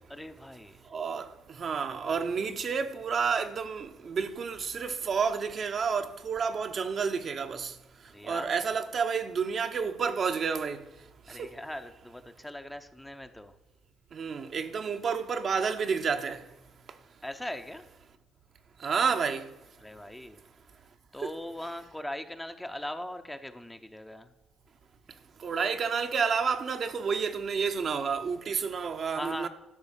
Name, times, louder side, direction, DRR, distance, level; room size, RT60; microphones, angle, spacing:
voice 1, 0.1-0.9 8.0-8.5 11.3-13.5 17.2-17.9 19.8-20.4 21.1-24.3 29.1-29.5, left 1 dB, 5° left, 0.7 m, -40 dB
voice 2, 0.9-7.7 8.2-10.8 11.3-11.5 14.1-16.4 18.8-19.5 21.2-21.3 25.4-29.5, right 6 dB, 45° right, 0.9 m, -30 dB
12.0 x 6.1 x 7.3 m
cardioid pair, 115°, 0 cm